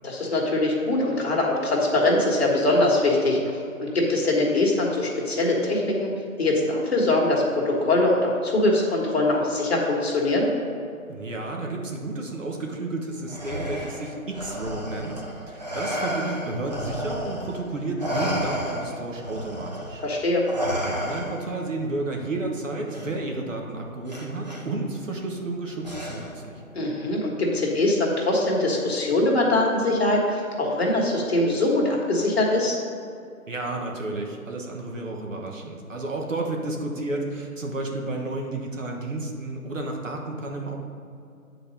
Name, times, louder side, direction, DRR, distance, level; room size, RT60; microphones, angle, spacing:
voice 1, 0.0-3.4 3.8-6.1 6.4-10.5 20.0-20.4 26.7-32.8, left 2 dB, 45° left, -3 dB, 1.6 m, -22 dB
voice 2, 11.1-20.0 20.6-26.6 33.5-40.8, right 2 dB, 60° right, 1 dB, 1.3 m, -31 dB
Respiratory sounds, 13.3-17.6 18.0-21.6 22.9-23.1 24.1-24.6 25.8-26.5, equal, 30° right, 0.7 m, -32 dB
9.1 x 4.1 x 5.2 m, 2.5 s
figure-of-eight pair, 165°, 44 cm